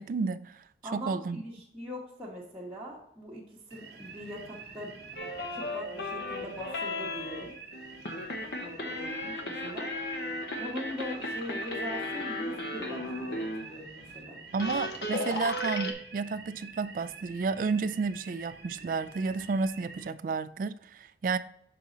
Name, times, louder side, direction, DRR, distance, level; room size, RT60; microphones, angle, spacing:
voice 1, 0.0-0.6 0.9-1.4 14.5-21.4, right 4 dB, 50° right, 0.3 m, -31 dB
voice 2, 0.8-4.9 5.5-7.5 8.6-9.9 10.6-14.4 15.1-15.4, equal, 5° right, 1.2 m, -42 dB
sound 1, 3.7-20.1, right 4 dB, 70° right, 1.0 m, -48 dB
sound 2, 5.2-13.7 14.1-14.2 14.5-15.9, left 1 dB, 65° left, 1.0 m, -35 dB
6.8 x 4.8 x 3.8 m
head